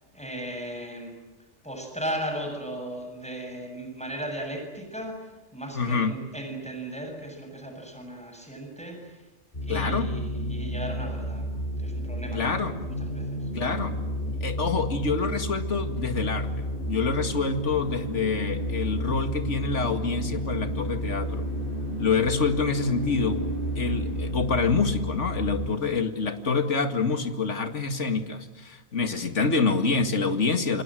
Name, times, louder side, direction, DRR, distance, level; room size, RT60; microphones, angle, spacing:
voice 1, 0.1-1.2 1.6-9.2 9.6-11.4 11.8-13.5, right 1 dB, 5° left, 3 dB, 7.2 m, -36 dB
voice 2, 5.8-6.1 9.7-10.1 12.3-12.8 13.5-14.0 14.2-21.5 22.0-23.4 23.8-30.8, left 4 dB, 75° left, 8 dB, 2.4 m, -27 dB
sound 1, 9.5-25.7, equal, 50° left, 6.4 m, -31 dB
sound 2, 15.7-24.3, right 1 dB, 50° right, 4.0 m, -40 dB
28.5 x 27.0 x 7.7 m, 1.2 s
omnidirectional pair, 1.2 m